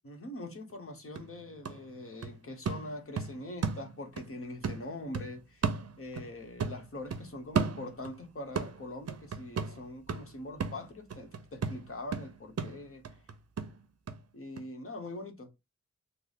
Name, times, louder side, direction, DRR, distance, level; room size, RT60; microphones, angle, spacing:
voice 1, 0.0-5.7 6.0-13.0 14.3-15.5, left 1 dB, 45° left, 1.1 m, -43 dB
sound 1, 0.7-0.8 1.2-4.3 4.6-6.3 6.6-8.2 8.6-14.2 14.6-14.7, right 5 dB, 55° right, 0.6 m, -35 dB
3.3 x 2.0 x 4.0 m
cardioid pair, 45°, 31 cm